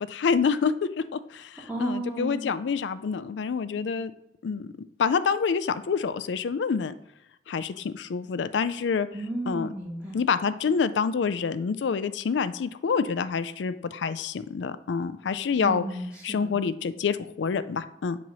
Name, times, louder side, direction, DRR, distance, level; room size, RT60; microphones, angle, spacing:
voice 1, 0.1-4.1 4.4-6.9 7.5-9.1 9.5-9.7 10.1-15.8 16.2-18.2, left 5 dB, 85° left, 13 dB, 0.4 m, -27 dB
voice 2, 1.7-2.5 9.1-10.2 15.6-16.6, right 1 dB, 10° right, -5 dB, 1.2 m, -33 dB
7.4 x 3.0 x 5.4 m, 0.82 s
head